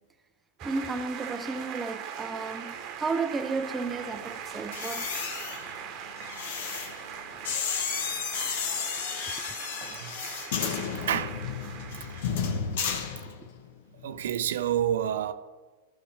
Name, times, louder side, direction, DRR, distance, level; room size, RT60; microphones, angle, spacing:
voice 1, 0.6-5.1 9.4-9.5, right 4 dB, 15° right, 0.4 m, -33 dB
sound 1, 0.6-12.7, right 8 dB, 45° right, 0.9 m, -41 dB
sound 2, 4.6-13.7 14.0-14.3, left 7 dB, 70° left, 0.9 m, -33 dB
voice 2, 10.5-11.4 13.0-13.1 14.0-15.3, right 10 dB, 75° right, 0.5 m, -29 dB
13.0 x 5.7 x 3.3 m
hypercardioid pair, 130°, 0 cm